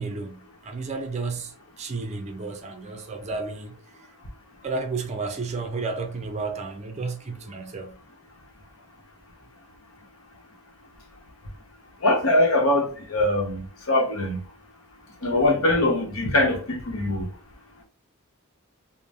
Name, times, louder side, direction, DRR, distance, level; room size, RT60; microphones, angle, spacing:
voice 1, 0.0-3.7 4.6-8.0, right 4 dB, 30° right, 0.4 m, -32 dB
voice 2, 12.0-14.4 15.2-17.3, left 1 dB, 80° left, 0.8 m, -22 dB
3.3 x 2.1 x 2.6 m
head